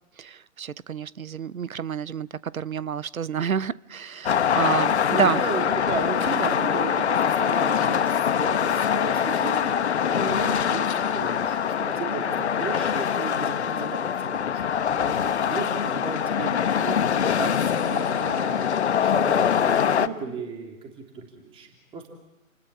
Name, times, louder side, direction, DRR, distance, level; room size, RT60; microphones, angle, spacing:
voice 1, 0.2-5.4, right 7 dB, 80° right, 0.8 m, -29 dB
sound 1, 4.3-20.1, left 8 dB, 55° left, 1.2 m, -24 dB
voice 2, 5.1-12.2 12.5-22.1, right 4 dB, 15° right, 3.3 m, -35 dB
29.5 x 20.0 x 7.6 m
figure-of-eight pair, 140°, 41 cm